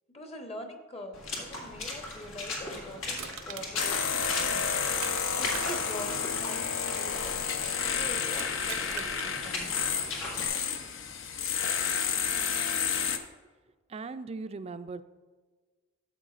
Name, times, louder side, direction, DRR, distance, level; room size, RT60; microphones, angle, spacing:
voice 1, 0.1-4.7 5.3-7.4 7.7-9.9, equal, 30° left, 4 dB, 1.0 m, -44 dB
Water / Splash splatter, 1.1-10.5, left 2 dB, 85° left, 2.0 m, -39 dB
Crushing, 3.1-5.2 5.5-7.7 8.3-9.3 9.8-9.9, right 10 dB, 75° right, 0.6 m, -43 dB
sound 1, 3.8-13.2, left 7 dB, 70° left, 0.7 m, -30 dB
voice 2, 13.9-15.0, right 3 dB, 30° right, 12 dB, 0.3 m, -38 dB
13.0 x 7.5 x 2.5 m, 1.4 s
head